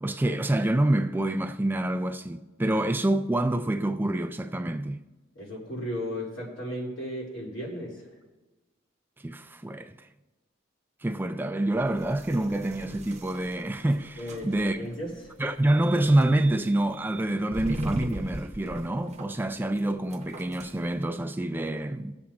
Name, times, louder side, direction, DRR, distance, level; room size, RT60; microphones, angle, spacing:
voice 1, 0.0-5.0 9.2-10.1 11.0-14.9 15.4-22.2, right 1 dB, 10° right, 0.3 m, -27 dB
voice 2, 5.3-8.0 14.2-15.3, equal, 75° left, 3.1 m, -35 dB
sound 1, 11.7-21.0, right 1 dB, 35° right, 0.8 m, -39 dB
20.0 x 7.1 x 2.5 m
head